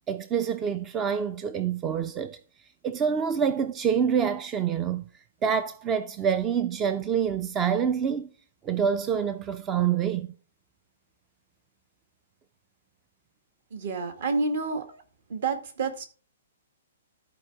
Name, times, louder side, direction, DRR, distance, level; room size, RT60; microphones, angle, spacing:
voice 1, 0.1-2.4 2.8-5.0 5.4-8.3 8.6-10.3, right 7 dB, 15° right, 0.4 m, -26 dB
voice 2, 13.7-15.0 15.3-16.0, right 4 dB, 55° right, 2.1 m, -29 dB
13.5 x 4.5 x 4.8 m
hypercardioid pair, 165°, 0 cm